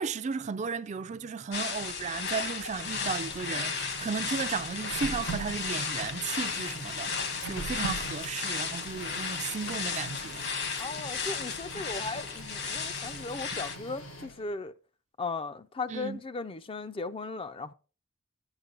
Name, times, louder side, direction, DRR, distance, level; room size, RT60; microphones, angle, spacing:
voice 1, 0.0-10.5 15.9-16.2, right 5 dB, 35° right, 0.4 m, -34 dB
sound 1, 1.5-13.8, left 5 dB, 55° left, 1.5 m, -35 dB
Printer, 2.5-14.5, right 1 dB, 90° left, 6.0 m, -42 dB
voice 2, 10.8-14.7 15.2-17.7, left 3 dB, 25° left, 0.5 m, -37 dB
11.5 x 8.1 x 3.8 m
head